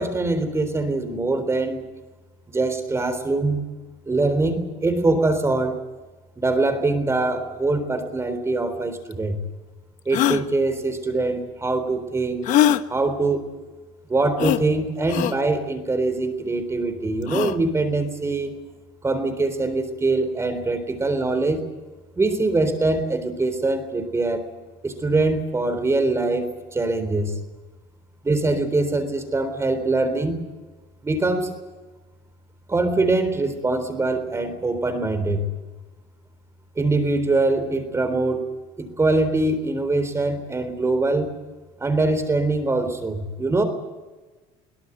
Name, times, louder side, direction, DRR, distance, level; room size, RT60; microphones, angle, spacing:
voice 1, 0.0-1.8 2.5-3.6 4.1-5.8 6.4-9.4 10.1-12.4 12.9-13.5 14.1-18.6 19.0-21.6 22.2-24.4 24.8-27.3 28.2-30.4 31.0-31.5 32.7-35.5 36.8-38.4 38.8-41.3 41.8-43.6, right 2 dB, 20° right, 8 dB, 3.8 m, -23 dB
sound 1, 9.1-9.2 10.1-10.4 12.4-12.8 14.4-14.6 15.1-15.3 17.2-17.6, left 11 dB, 60° left, 1.1 m, -21 dB
22.0 x 18.0 x 8.1 m, 1.3 s
cardioid pair, 115°, 15 cm